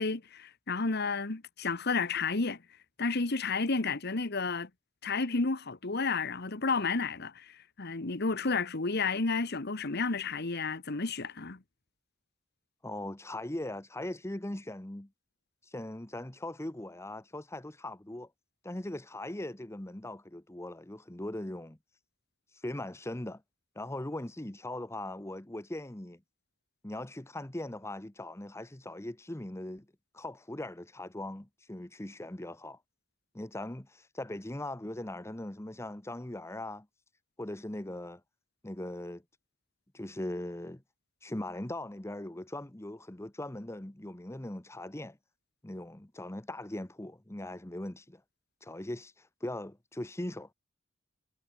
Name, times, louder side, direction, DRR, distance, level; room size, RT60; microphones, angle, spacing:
voice 1, 0.0-2.6 3.0-4.7 5.0-11.6, left 4 dB, 55° left, 1.4 m, -31 dB
voice 2, 12.8-15.1 15.6-18.3 18.6-21.8 22.6-23.4 23.7-26.2 26.8-29.9 30.1-32.8 33.3-36.9 37.4-38.2 38.6-39.2 39.9-40.8 41.2-45.2 45.6-48.2 48.6-50.5, left 1 dB, 15° left, 1.0 m, -40 dB
head